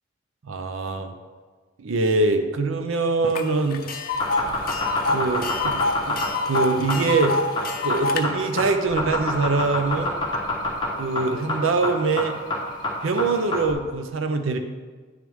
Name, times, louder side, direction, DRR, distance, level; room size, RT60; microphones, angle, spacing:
voice 1, 0.4-1.1 1.8-3.8 4.5-4.6 5.1-5.8 6.1-6.2 6.4-7.4 7.8-10.4 10.8-12.4 13.0-14.6, right 3 dB, 80° right, 7 dB, 0.6 m, -23 dB
Tick, 3.4-3.5 3.7-8.2, left 3 dB, 45° left, 0.7 m, -26 dB
sound 1, 4.1-13.7, left 2 dB, 25° left, 1.4 m, -26 dB
9.7 x 6.1 x 3.6 m, 1.5 s
head